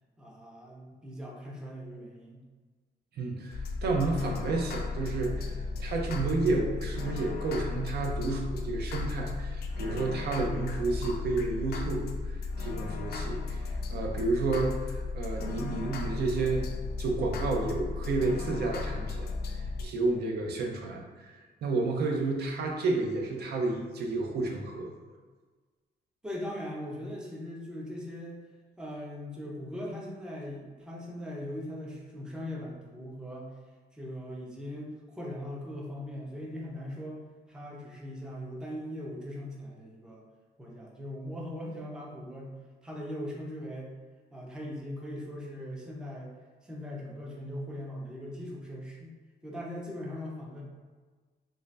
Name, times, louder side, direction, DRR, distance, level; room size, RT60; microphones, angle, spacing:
voice 1, 0.2-2.4 26.2-28.4 28.8-33.6 33.9-37.2 37.5-40.2 40.6-42.5 42.8-43.9 44.3-46.4 46.6-49.1 49.4-50.6, left 1 dB, 5° right, -3 dB, 0.5 m, -40 dB
voice 2, 3.2-16.7 17.0-21.3 21.6-24.9, right 3 dB, 65° right, 1 dB, 0.5 m, -31 dB
sound 1, 3.5-19.8, left 3 dB, 65° left, 0.4 m, -35 dB
3.2 x 2.6 x 3.2 m, 1.4 s
wide cardioid pair, 170°, 18 cm